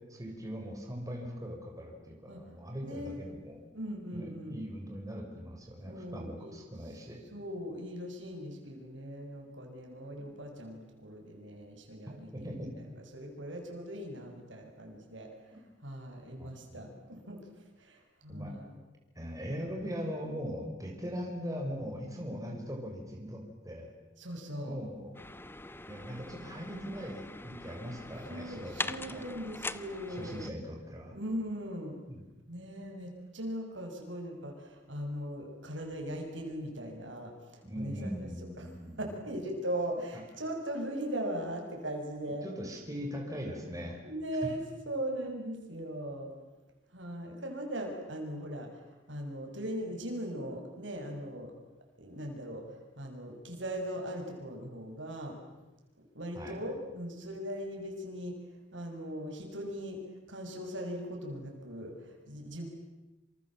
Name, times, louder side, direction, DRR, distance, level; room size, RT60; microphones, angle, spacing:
voice 1, 0.0-3.6 4.1-7.2 12.3-12.7 16.4-16.9 18.3-18.5 19.2-23.9 24.6-25.1 25.9-29.3 30.1-31.2 32.1-32.3 37.6-39.2 42.3-44.0 56.3-56.6, equal, 20° right, 1 dB, 5.9 m, -40 dB
voice 2, 2.8-3.2 3.7-4.6 5.9-6.5 7.3-12.5 12.9-15.3 15.8-17.5 17.8-18.7 24.2-24.8 28.3-30.5 31.1-32.0 32.5-38.1 38.6-38.7 39.0-42.5 44.0-44.6 44.9-46.3 46.9-48.8 49.1-51.5 52.0-52.6 53.0-55.3 56.1-58.4 58.7-60.0 60.3-62.7, equal, 75° right, 2 dB, 6.6 m, -39 dB
sound 1, 25.1-30.5, left 2 dB, 10° left, 0.9 m, -42 dB
28.0 x 27.5 x 7.6 m, 1.1 s
head